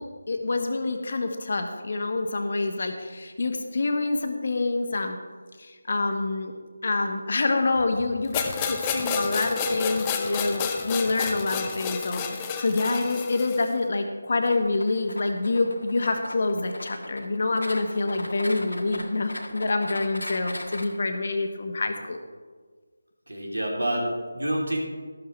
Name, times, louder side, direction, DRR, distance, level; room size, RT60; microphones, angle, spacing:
voice 1, 0.0-5.2 5.6-6.5 6.8-22.2, left 3 dB, 50° left, 5 dB, 1.4 m, -27 dB
sound 1, 8.3-13.7, left 5 dB, 15° left, 0.7 m, -30 dB
sound 2, 14.4-20.9, left 1 dB, 90° left, 1.5 m, -39 dB
voice 2, 23.3-24.8, right 1 dB, 85° right, 0 dB, 3.1 m, -28 dB
12.5 x 12.5 x 3.3 m, 1.5 s
figure-of-eight pair, 165°, 0 cm